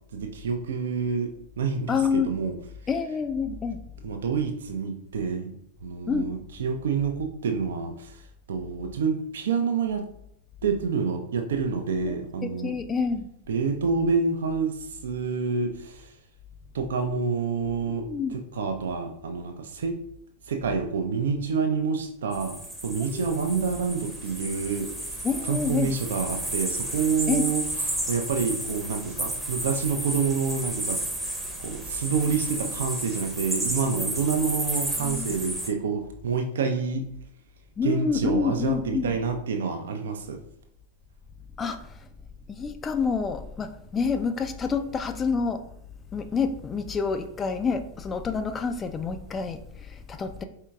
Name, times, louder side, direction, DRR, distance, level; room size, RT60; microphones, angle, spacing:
voice 1, 0.1-1.3 1.6-2.5 4.0-5.5 5.8-8.2 8.5-10.1 10.6-12.7 13.5-16.1 16.7-20.0 20.5-25.1 25.5-31.0 31.6-37.1 37.8-40.4, right 5 dB, 60° right, 4 dB, 0.4 m, -28 dB
voice 2, 1.9-2.3 2.9-3.8 6.1-6.3 12.0-13.3 17.9-18.3 23.1-23.3 25.2-25.9 27.3-27.4 35.0-35.3 37.8-39.2 41.6-42.1 42.5-45.6 46.1-50.4, left 5 dB, 20° left, 8 dB, 0.3 m, -28 dB
sound 1, 22.3-35.7, right 1 dB, 5° right, 0.7 m, -32 dB
4.4 x 3.6 x 2.3 m, 0.71 s
figure-of-eight pair, 90°, 0 cm